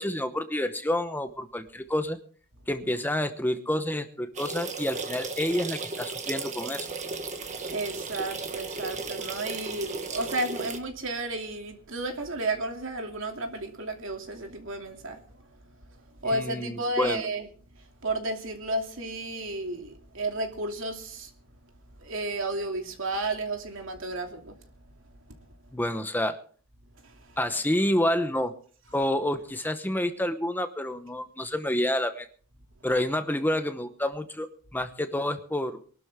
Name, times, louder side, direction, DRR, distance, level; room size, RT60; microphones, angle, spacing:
voice 1, 0.0-2.2 2.7-6.9 16.2-17.3 25.7-26.4 27.4-28.5 28.9-32.3 32.8-34.5 34.7-35.8, left 1 dB, 10° left, 1.0 m, -28 dB
sound 1, 4.3-10.8, right 4 dB, 35° right, 1.8 m, -35 dB
voice 2, 7.7-15.2 16.2-17.5 18.0-21.3 22.0-24.5 27.0-27.1, right 2 dB, 65° right, 2.8 m, -32 dB
23.0 x 12.5 x 3.7 m
head